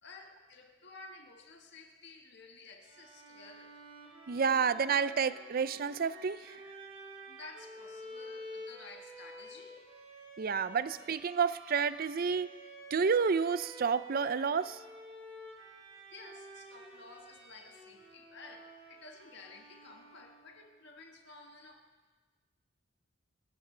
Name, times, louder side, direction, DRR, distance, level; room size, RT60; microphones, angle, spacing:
voice 1, 0.0-3.8 7.3-10.7 16.1-22.1, left 3 dB, 60° left, 2 dB, 1.6 m, -53 dB
Bowed string instrument, 2.8-20.7, right 1 dB, 30° right, 3.4 m, -51 dB
voice 2, 4.3-6.6 10.4-12.5 12.9-14.8, right 6 dB, 45° right, 15 dB, 0.5 m, -30 dB
26.0 x 16.5 x 3.3 m, 1.4 s
head